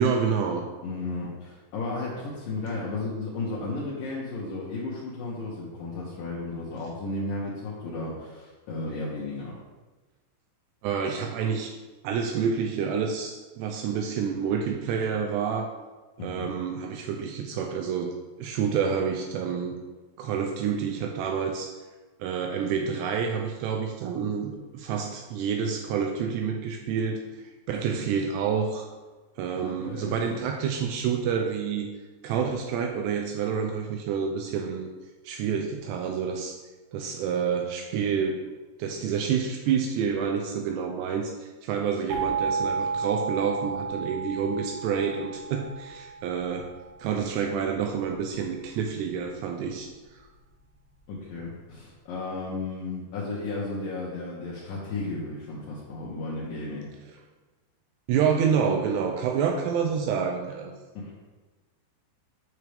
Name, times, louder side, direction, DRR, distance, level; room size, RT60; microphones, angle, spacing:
voice 1, 0.0-0.7 10.8-11.7 12.0-15.7 16.2-19.8 20.2-21.7 22.2-27.2 27.7-28.9 29.4-31.9 32.2-34.9 35.3-36.6 36.9-38.4 38.8-46.7 47.0-49.9 58.1-60.7, right 6 dB, 90° right, 3 dB, 2.5 m, -28 dB
voice 2, 0.8-9.5 16.2-16.5 27.9-28.0 29.5-30.4 51.1-56.9 60.9-61.2, left 3 dB, 75° left, -6 dB, 2.0 m, -34 dB
sound 1, 42.1-46.8, right 5 dB, 65° right, 2.5 m, -32 dB
9.0 x 6.2 x 3.4 m, 1.3 s
omnidirectional pair, 5.5 m